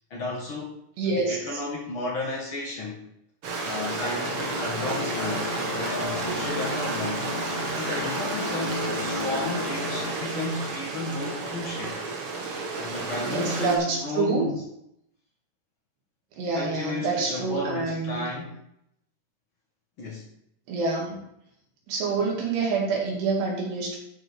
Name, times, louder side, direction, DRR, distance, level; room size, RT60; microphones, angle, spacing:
voice 1, 0.1-0.8 1.0-3.0 3.6-7.3 7.7-12.0 12.8-14.5 16.5-18.6 20.0-20.3, left 2 dB, 70° left, -3 dB, 1.2 m, -33 dB
voice 2, 1.0-1.6 4.7-5.0 13.3-14.5 16.4-18.2 20.7-21.2 21.9-24.0, right 4 dB, 80° right, -2 dB, 4.5 m, -27 dB
Stream, 3.4-13.8, right 3 dB, 55° right, 1.5 m, -32 dB
sound 1, 4.0-10.1, left 3 dB, 90° left, 4.2 m, -33 dB
13.0 x 5.0 x 4.7 m, 0.78 s
omnidirectional pair, 4.7 m